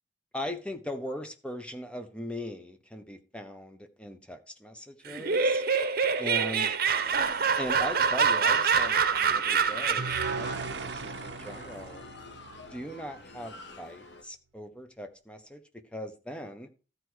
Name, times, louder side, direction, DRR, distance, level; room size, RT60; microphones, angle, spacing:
voice 1, 0.3-5.6 6.2-6.7 7.6-12.0 12.7-16.7, left 1 dB, 5° left, 1.2 m, -39 dB
Laughter, 5.1-10.5, right 6 dB, 55° right, 1.0 m, -26 dB
sound 1, 7.0-14.2, left 3 dB, 85° left, 1.6 m, -47 dB
sound 2, 10.0-13.2, right 4 dB, 75° right, 0.9 m, -38 dB
13.5 x 4.8 x 6.4 m
head